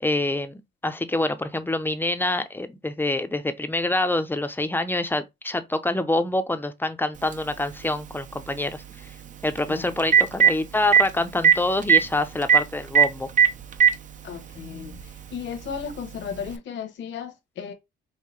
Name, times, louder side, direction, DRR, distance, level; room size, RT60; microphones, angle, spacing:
voice 1, 0.0-8.8 9.4-13.3, left 2 dB, 10° left, 0.6 m, -26 dB
Telephone, 7.3-7.4 9.6-9.7 10.0-10.5 10.9-11.0 11.4-11.6 11.8-12.0 12.5-12.6 13.0-13.1 13.4-13.9 14.9-15.0 16.5-16.6, right 8 dB, 40° right, 0.5 m, -15 dB
voice 2, 14.2-15.0 15.3-17.7, left 7 dB, 70° left, 1.0 m, -35 dB
5.5 x 2.1 x 3.1 m
cardioid pair, 90°, 20 cm